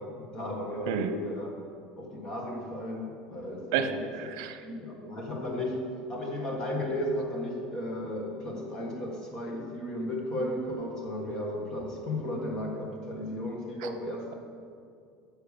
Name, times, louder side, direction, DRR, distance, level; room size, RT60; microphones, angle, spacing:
voice 1, 0.0-1.5 2.0-4.1 4.6-14.3, left 1 dB, 25° left, 0 dB, 1.7 m, -34 dB
voice 2, 0.9-1.2 3.7-4.5, right 7 dB, 70° right, 9 dB, 0.8 m, -30 dB
10.0 x 6.6 x 6.6 m, 2.3 s
cardioid pair, 175°, 3 cm